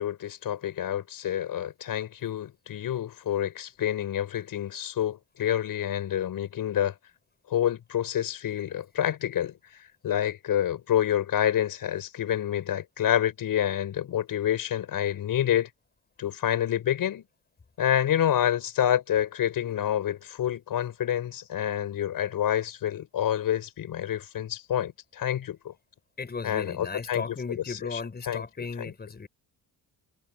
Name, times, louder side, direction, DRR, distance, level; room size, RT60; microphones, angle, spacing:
voice 1, 0.0-6.9 7.5-9.5 9.8-15.7 16.2-17.2 17.8-25.7 26.4-27.2 27.9-28.0 28.3-28.4, left 10 dB, 65° left, 5.7 m, -28 dB
voice 2, 26.2-29.3, left 4 dB, 25° left, 5.8 m, -36 dB
cardioid pair, 135°, 37 cm